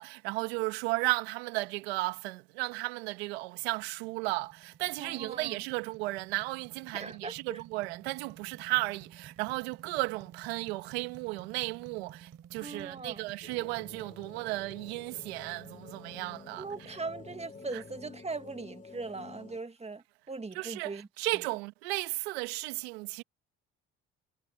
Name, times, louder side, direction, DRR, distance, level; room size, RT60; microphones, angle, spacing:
voice 1, 0.0-17.0 17.7-17.8 20.5-23.2, right 23 dB, 90° right, 1.9 m, -34 dB
sound 1, 3.6-18.8, right 9 dB, 50° right, 6.9 m, -55 dB
voice 2, 5.0-5.6 6.9-7.6 12.6-13.2 16.6-21.1, right 3 dB, 20° right, 2.1 m, -40 dB
sound 2, 13.4-19.6, left 4 dB, 25° left, 2.9 m, -50 dB
supercardioid pair, 70°, 30 cm